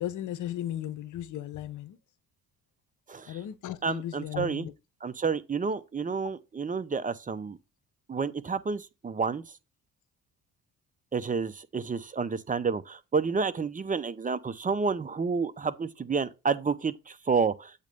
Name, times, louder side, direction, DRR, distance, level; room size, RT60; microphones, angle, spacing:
voice 1, 0.0-2.0 3.3-4.7, left 12 dB, 80° left, 0.9 m, -36 dB
voice 2, 3.1-3.4 3.8-4.7 5.0-7.6 8.1-9.4 11.1-17.7, right 5 dB, 25° right, 0.7 m, -30 dB
8.1 x 3.1 x 5.2 m
cardioid pair, 90°, 30 cm